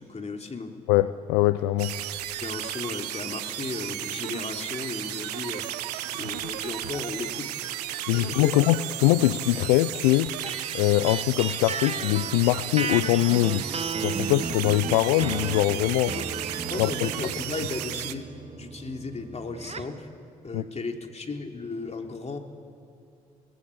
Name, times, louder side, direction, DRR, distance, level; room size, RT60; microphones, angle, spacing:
voice 1, 0.0-0.8 2.4-7.6 8.1-8.6 16.1-18.3 18.5-20.1 20.4-22.4, left 3 dB, 35° left, 3 dB, 3.3 m, -35 dB
voice 2, 0.9-2.0 8.1-10.3 10.7-13.6 14.0-16.1 16.8-17.1 20.5-20.6, left 17 dB, 75° left, 15 dB, 0.6 m, -22 dB
sound 1, 1.8-18.1, right 13 dB, 80° right, 0.8 m, -34 dB
sound 2, 10.5-20.0, right 5 dB, 30° right, 1.5 m, -35 dB
25.5 x 19.5 x 8.6 m, 2.6 s
hypercardioid pair, 45°, 20 cm